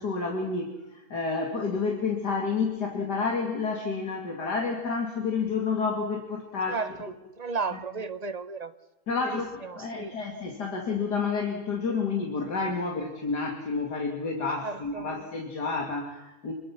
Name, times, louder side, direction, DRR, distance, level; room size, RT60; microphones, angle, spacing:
voice 1, 0.0-6.8 7.7-7.8 9.1-16.5, left 4 dB, 80° left, 2 dB, 3.1 m, -30 dB
voice 2, 6.7-7.1 7.4-8.7 9.2-10.2 14.6-15.1, right 4 dB, 25° right, 11 dB, 1.1 m, -34 dB
27.5 x 23.0 x 6.0 m, 1.1 s
omnidirectional pair, 1.7 m